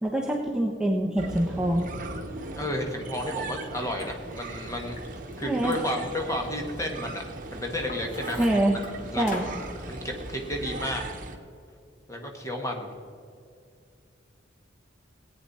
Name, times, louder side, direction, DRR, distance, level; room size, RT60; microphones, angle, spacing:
voice 1, 0.0-1.8 5.4-5.8 8.4-8.8 9.2-9.5, right 1 dB, 5° right, -1 dB, 0.8 m, -25 dB
sound 1, 1.2-11.4, right 2 dB, 45° right, 1.1 m, -38 dB
voice 2, 2.5-5.0 5.4-7.2 7.5-8.8 9.1-9.2 9.9-11.0 12.1-12.9, left 1 dB, 15° left, 2 dB, 1.6 m, -32 dB
Liquid, 4.0-4.1 4.6-7.0 7.5-8.9 9.3-9.6, left 1 dB, 45° left, 2.0 m, -42 dB
18.0 x 9.1 x 4.2 m, 2.3 s
head